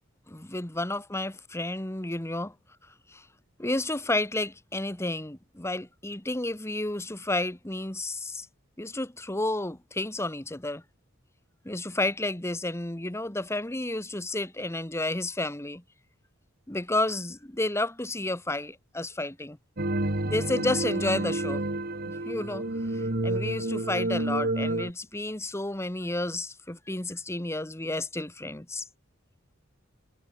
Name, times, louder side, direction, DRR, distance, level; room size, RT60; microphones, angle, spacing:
voice 1, 0.3-2.5 3.1-3.3 3.6-8.5 8.8-10.8 11.6-15.8 16.7-19.6 20.2-21.6 22.1-22.6 22.9-28.8, left 2 dB, 15° left, 1.5 m, -31 dB
sound 1, 19.8-24.9, right 1 dB, 50° right, 2.1 m, -29 dB
head